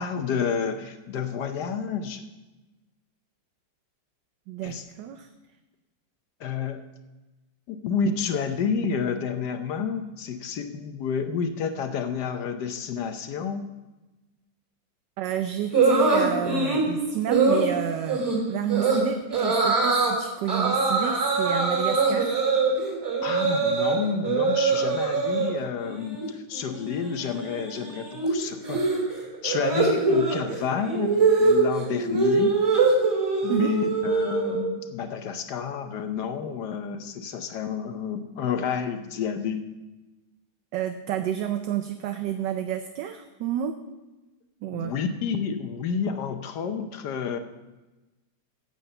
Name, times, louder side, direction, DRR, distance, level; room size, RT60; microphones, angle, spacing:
voice 1, 0.0-2.2 4.6-4.8 6.4-6.8 7.7-13.6 23.2-28.8 29.4-32.6 33.4-39.7 44.7-47.4, left 6 dB, 65° left, 8 dB, 1.2 m, -30 dB
voice 2, 4.5-5.3 15.2-18.2 18.5-22.4 32.4-32.5 33.5-33.7 40.7-43.8 44.6-44.9, right 9 dB, 70° right, 8 dB, 1.2 m, -30 dB
sound 1, 15.7-16.9 17.3-17.7 18.1-18.4 18.7-19.0 19.3-20.1 20.5-24.0 24.2-25.5 25.8-26.3 26.5-34.7, right 4 dB, 10° right, 3.2 m, -23 dB
9.2 x 8.0 x 6.7 m, 1.1 s
omnidirectional pair, 2.1 m